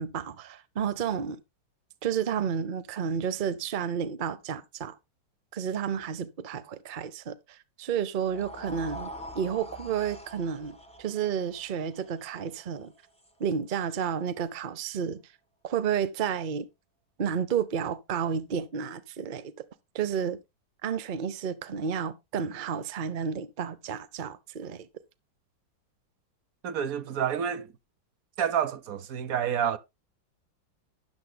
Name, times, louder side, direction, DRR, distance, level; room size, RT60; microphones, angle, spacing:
voice 1, 0.0-1.4 2.0-4.9 5.5-12.9 13.4-15.2 15.6-16.7 17.2-19.5 19.9-20.4 20.8-24.9, right 7 dB, 80° right, 0.4 m, -31 dB
sound 1, 8.2-14.4, equal, 5° left, 1.3 m, -45 dB
voice 2, 26.6-27.7 28.4-29.8, right 8 dB, 60° right, 1.0 m, -28 dB
13.0 x 9.8 x 2.2 m
omnidirectional pair, 2.0 m